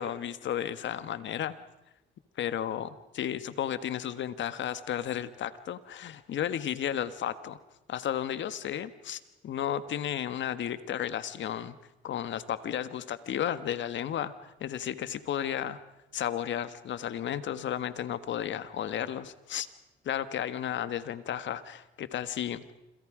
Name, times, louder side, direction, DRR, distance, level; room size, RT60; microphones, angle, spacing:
voice 1, 0.0-1.6 2.4-7.6 7.9-11.8 12.0-15.8 16.1-19.7 20.0-22.6, left 10 dB, 70° left, 13 dB, 1.5 m, -33 dB
28.0 x 27.0 x 5.0 m, 0.95 s
cardioid pair, 90°, 20 cm